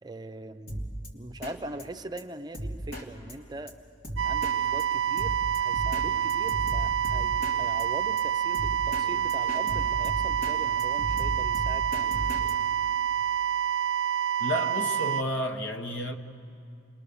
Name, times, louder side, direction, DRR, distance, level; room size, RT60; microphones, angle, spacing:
voice 1, 0.0-0.8 1.1-3.7 4.2-12.3, right 1 dB, 25° right, 0.6 m, -41 dB
Drum kit, 0.7-1.1 1.4-1.5 1.8-1.9 2.2-2.3 2.5-3.0 3.3-3.4 3.7-3.8 4.0-4.5 4.8-4.9 5.2-6.0 6.3-7.5 7.8-7.9 8.2-8.3 8.5-9.0 9.3-10.5 10.8-12.5, right 1 dB, 55° left, 2.9 m, -35 dB
sound 1, 4.2-15.2, right 9 dB, 85° right, 0.5 m, -27 dB
voice 2, 14.4-16.2, left 1 dB, 80° left, 1.3 m, -31 dB
29.5 x 22.0 x 7.0 m
head